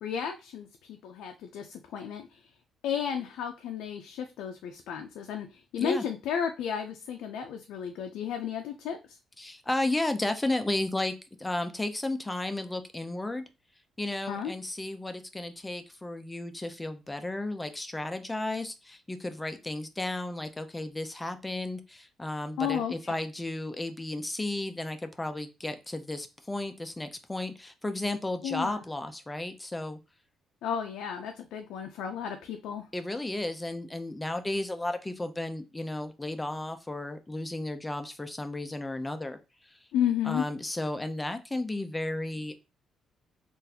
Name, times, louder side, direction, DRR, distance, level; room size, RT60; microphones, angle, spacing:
voice 1, 0.0-2.4 2.8-9.2 14.3-14.5 22.6-23.1 28.4-28.8 30.6-32.8 39.9-40.5, left 8 dB, 85° left, 4 dB, 0.4 m, -33 dB
voice 2, 9.4-11.1 11.4-13.4 14.0-30.0 32.9-39.4 39.6-39.8 40.2-42.5, left 2 dB, 15° left, 8 dB, 0.5 m, -33 dB
3.8 x 2.5 x 2.8 m, 0.28 s
cardioid pair, 90°, 0 cm